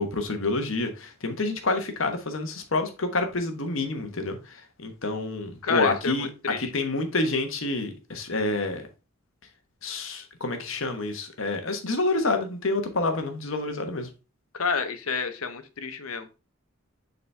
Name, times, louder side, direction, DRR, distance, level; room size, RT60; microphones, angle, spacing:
voice 1, 0.0-4.4 4.8-6.3 6.6-8.8 9.8-14.1, left 2 dB, 65° left, 6 dB, 1.2 m, -28 dB
voice 2, 5.6-6.7 14.5-16.4, left 5 dB, 85° left, 10 dB, 0.9 m, -29 dB
7.0 x 4.1 x 3.4 m, 0.30 s
head